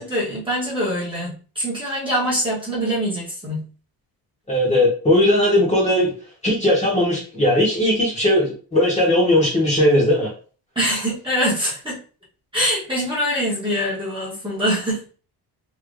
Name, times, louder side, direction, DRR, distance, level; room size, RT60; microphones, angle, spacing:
voice 1, 0.0-3.6 10.7-12.0 12.5-15.0, equal, 10° right, -8 dB, 1.1 m, -24 dB
voice 2, 4.5-6.1 6.4-10.3, left 1 dB, 15° left, -4 dB, 1.2 m, -18 dB
3.1 x 2.8 x 2.5 m, 0.38 s
cardioid pair, 155°, 42 cm